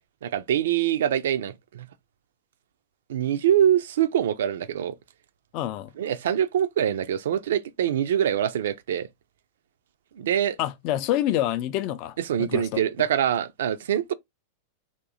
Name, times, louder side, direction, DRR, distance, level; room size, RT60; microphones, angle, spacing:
voice 1, 0.2-1.9 3.1-4.9 6.0-9.1 10.2-10.6 12.3-14.1, right 10 dB, 60° right, 0.4 m, -24 dB
voice 2, 5.5-5.9 10.6-12.8, left 13 dB, 45° left, 0.4 m, -27 dB
3.6 x 2.6 x 3.8 m
figure-of-eight pair, 90°, 0 cm